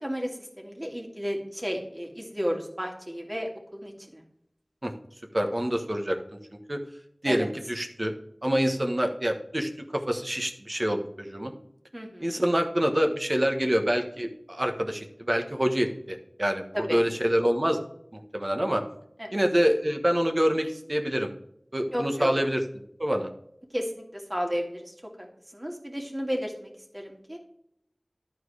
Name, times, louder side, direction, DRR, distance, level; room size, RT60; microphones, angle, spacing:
voice 1, 0.0-4.2 7.2-7.5 11.9-12.3 16.7-17.0 19.2-19.4 21.9-22.3 23.7-25.3 25.5-27.4, equal, 20° right, 1 dB, 2.2 m, -33 dB
voice 2, 5.3-6.2 6.7-6.8 7.2-8.1 8.4-11.5 12.2-17.8 18.1-18.8 19.3-21.3 21.7-22.6 23.0-23.3, equal, 40° right, 4 dB, 1.3 m, -26 dB
11.5 x 4.6 x 4.8 m, 0.74 s
wide cardioid pair, 40°, 0 cm